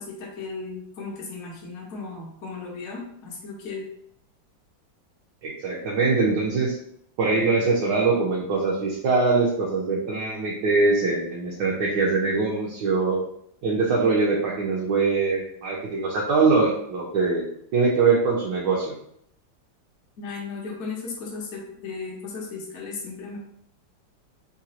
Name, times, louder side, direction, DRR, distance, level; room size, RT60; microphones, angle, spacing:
voice 1, 0.0-3.9 20.2-23.4, left 4 dB, 55° left, -2 dB, 0.8 m, -36 dB
voice 2, 5.4-6.8 7.2-13.2 13.6-17.5 17.7-18.9, right 4 dB, 75° right, -4 dB, 1.2 m, -22 dB
3.9 x 2.3 x 2.8 m, 0.71 s
omnidirectional pair, 2.0 m